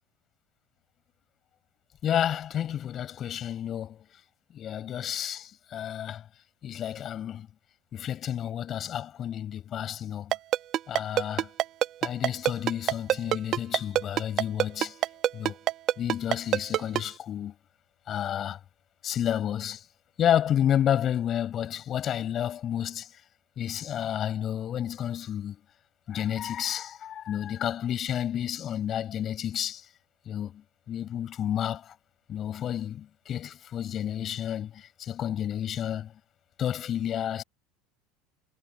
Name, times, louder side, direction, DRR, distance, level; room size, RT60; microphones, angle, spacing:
voice 1, 2.0-4.0 4.5-6.2 6.6-7.5 7.9-10.4 10.9-11.5 12.0-14.9 15.3-15.6 16.0-17.6 18.1-18.6 19.0-19.8 20.2-23.1 23.6-25.6 26.1-29.8 30.3-30.6 30.9-31.9 32.3-36.1 36.6-37.4, left 10 dB, 40° left, 7.3 m, -30 dB
Ringtone, 10.3-17.0, right 12 dB, 45° right, 1.2 m, -23 dB
hypercardioid pair, 95°, 0 cm